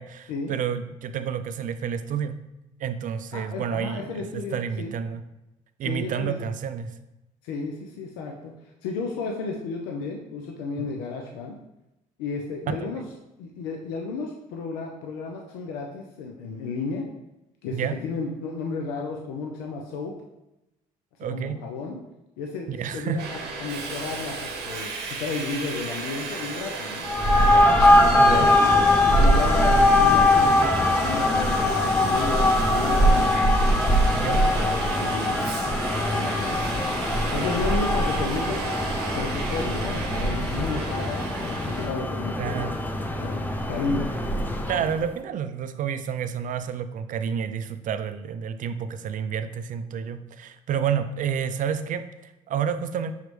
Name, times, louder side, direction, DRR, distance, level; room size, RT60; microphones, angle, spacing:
voice 1, 0.0-2.4 2.8-5.2 5.8-7.0 10.8-11.0 12.7-12.9 17.7-18.0 21.2-21.6 22.7-23.3 28.1-28.6 34.1-34.4 42.4-42.8 44.7-53.1, right 8 dB, 55° right, 11 dB, 0.4 m, -30 dB
voice 2, 3.3-4.9 5.8-6.4 7.4-8.5 8.8-11.5 12.2-13.0 13.4-17.1 17.6-20.1 21.2-22.0 22.4-27.1 27.9-33.3 34.2-35.4 35.8-37.0 37.3-38.6 39.1-42.7 43.2-44.1, left 4 dB, 90° left, 1 dB, 0.5 m, -33 dB
Subway metro underground, 23.2-41.9, right 3 dB, 85° right, 0.8 m, -33 dB
sound 1, 27.0-45.0, left 1 dB, 10° left, 0.7 m, -21 dB
5.6 x 3.0 x 3.1 m, 0.92 s
supercardioid pair, 70°, 16 cm